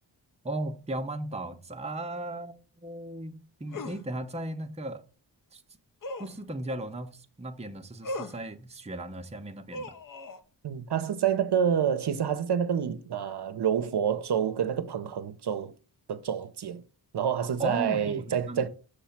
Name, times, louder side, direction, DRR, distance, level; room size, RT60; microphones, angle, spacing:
voice 1, 0.4-5.0 5.5-5.6 6.2-10.0 17.6-18.7, right 1 dB, 15° right, 0.7 m, -36 dB
sound 1, 3.7-4.0 6.0-6.4 8.0-8.4 9.7-10.4, left 1 dB, 45° left, 0.7 m, -37 dB
voice 2, 10.6-15.7 16.1-16.8 17.1-18.7, right 8 dB, 65° right, 0.7 m, -28 dB
6.6 x 3.1 x 5.7 m
wide cardioid pair, 75°, 44 cm